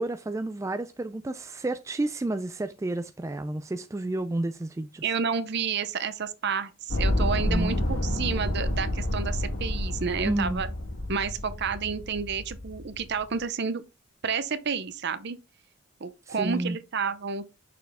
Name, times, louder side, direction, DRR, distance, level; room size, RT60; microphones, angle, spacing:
voice 1, 0.0-5.0 7.5-7.8 10.2-10.6 16.3-16.8, right 2 dB, 15° right, 0.3 m, -30 dB
voice 2, 5.0-10.7 11.1-13.8 14.2-15.4 16.0-17.5, right 6 dB, 55° right, 0.7 m, -30 dB
sound 1, 6.9-13.2, left 1 dB, 75° left, 1.5 m, -29 dB
6.4 x 4.5 x 3.5 m
head